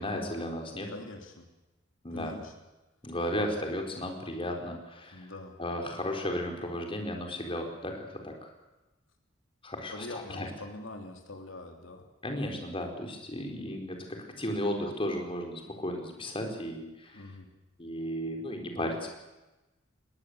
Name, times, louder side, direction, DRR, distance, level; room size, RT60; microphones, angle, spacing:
voice 1, 0.0-0.9 2.0-2.4 3.0-5.3 5.6-8.5 9.6-10.5 12.2-17.2 17.8-19.1, left 1 dB, 30° left, 3 dB, 4.2 m, -34 dB
voice 2, 0.9-1.5 2.1-2.5 5.1-5.6 9.9-12.1 17.1-17.5, left 2 dB, 80° left, 4 dB, 3.1 m, -43 dB
21.5 x 19.0 x 8.0 m, 1.1 s
head